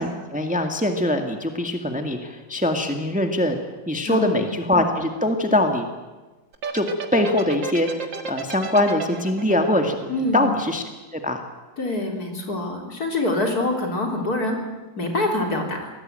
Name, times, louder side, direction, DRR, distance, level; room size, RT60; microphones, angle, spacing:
voice 1, 0.0-3.6 3.9-5.8 6.7-8.0 8.3-10.0 10.3-10.8 11.1-11.4, left 1 dB, 5° right, 5 dB, 1.8 m, -22 dB
voice 2, 4.0-4.4 10.1-10.5 11.8-14.6 15.0-15.9, left 1 dB, 55° left, 2 dB, 4.2 m, -25 dB
sound 1, 6.5-10.9, right 4 dB, 85° right, 2.7 m, -33 dB
25.0 x 18.5 x 9.0 m, 1.2 s
omnidirectional pair, 1.9 m